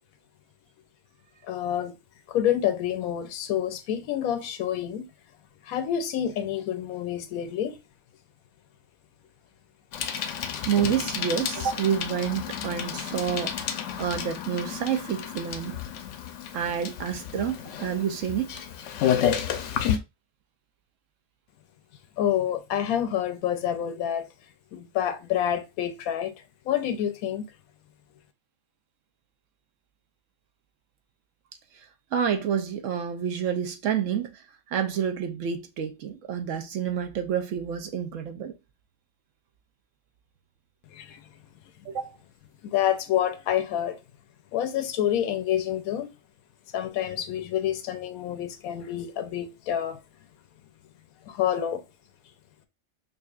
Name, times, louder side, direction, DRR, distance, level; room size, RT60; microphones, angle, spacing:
voice 1, 1.4-2.0 2.3-5.1 5.6-7.7 22.2-24.3 24.7-27.5 40.9-41.2 42.6-44.0 44.5-46.1 46.7-50.0 51.3-51.8, left 10 dB, 85° left, 1.1 m, -28 dB
Bicycle, 9.9-20.0, left 9 dB, 70° left, 0.8 m, -31 dB
voice 2, 10.6-15.8 16.5-18.5 32.1-34.4 34.7-38.5 41.9-42.1, right 8 dB, 70° right, 0.9 m, -28 dB
5.1 x 2.5 x 2.4 m
omnidirectional pair, 1.5 m